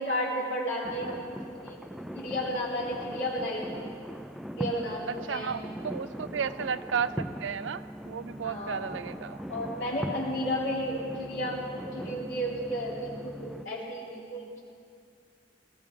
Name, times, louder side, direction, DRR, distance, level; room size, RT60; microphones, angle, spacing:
voice 1, 0.0-1.8 2.1-3.9 4.6-5.6 6.4-6.5 8.4-8.8 9.5-14.6, equal, 80° left, -5 dB, 3.4 m, -33 dB
sound 1, 0.8-13.7, equal, ahead, 0.3 m, -40 dB
voice 2, 5.1-9.4, right 7 dB, 80° right, 14 dB, 0.5 m, -33 dB
18.5 x 16.0 x 3.7 m, 2.3 s
head